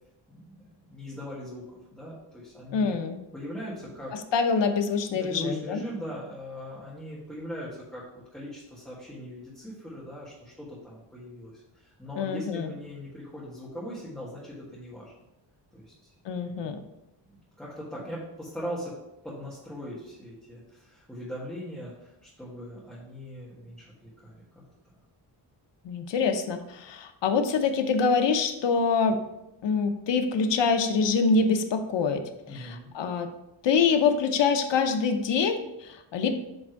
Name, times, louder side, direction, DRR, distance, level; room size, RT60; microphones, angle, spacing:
voice 1, 0.8-3.0 3.3-4.2 5.1-15.1 15.7-16.1 17.6-19.0 19.2-24.6 32.5-32.9, equal, ahead, -9 dB, 1.7 m, -40 dB
voice 2, 2.7-3.2 4.3-5.8 12.2-12.7 16.2-16.8 25.8-29.2 29.6-32.2 32.5-33.3 33.6-36.3, left 5 dB, 70° left, 6 dB, 0.9 m, -25 dB
7.9 x 3.5 x 4.6 m, 0.90 s
wide cardioid pair, 135°, 44 cm